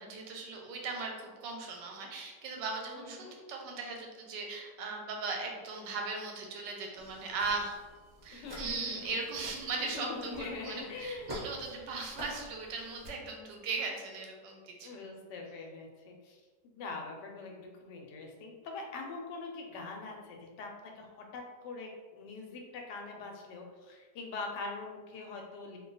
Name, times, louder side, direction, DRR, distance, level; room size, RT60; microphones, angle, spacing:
voice 1, 0.0-7.8 8.2-15.0, right 4 dB, 85° right, 1 dB, 1.3 m, -38 dB
voice 2, 3.0-3.4 8.3-9.2 9.8-11.3 14.8-16.4 16.6-25.8, left 3 dB, 80° left, 2 dB, 1.2 m, -43 dB
sound 1, 6.9-13.1, equal, 25° right, 0.5 m, -48 dB
2.8 x 2.2 x 3.9 m, 1.4 s
omnidirectional pair, 1.9 m